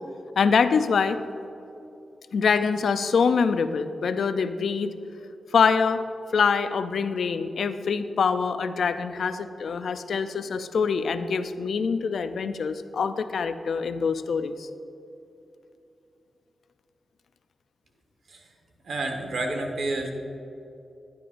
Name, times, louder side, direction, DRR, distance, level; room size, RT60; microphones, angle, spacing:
voice 1, 0.4-1.2 2.3-4.9 5.5-6.0 6.3-14.7, left 5 dB, 80° left, 11 dB, 0.4 m, -24 dB
voice 2, 18.8-20.1, right 2 dB, 75° right, 3 dB, 1.2 m, -29 dB
11.0 x 10.5 x 2.5 m, 2.8 s
cardioid pair, 55°, 0 cm